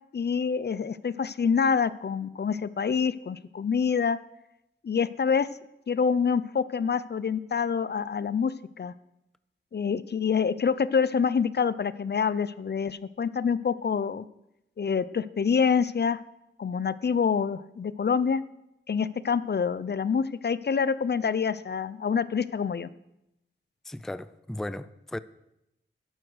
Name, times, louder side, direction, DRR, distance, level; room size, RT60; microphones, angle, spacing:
voice 1, 0.1-4.2 4.8-5.5 5.9-8.9 9.7-14.3 14.8-16.2 16.6-18.4 18.9-22.9, left 6 dB, 55° left, 0.6 m, -26 dB
voice 2, 23.8-25.2, left 1 dB, ahead, 0.4 m, -36 dB
12.5 x 11.0 x 6.4 m
wide cardioid pair, 105°, 20 cm